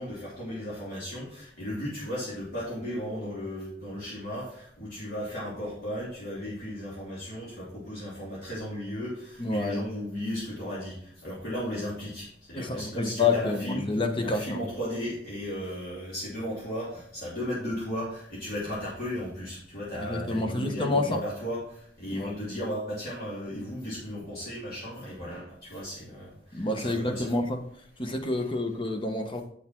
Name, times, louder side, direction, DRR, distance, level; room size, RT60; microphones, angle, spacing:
voice 1, 0.0-13.9 14.2-27.3, equal, 55° left, 3.4 m, -35 dB
voice 2, 9.4-9.8 12.5-14.6 19.9-21.2 22.1-22.4 26.5-27.6 28.0-29.4, left 3 dB, 30° left, 1.0 m, -28 dB
8.3 x 6.5 x 4.5 m
head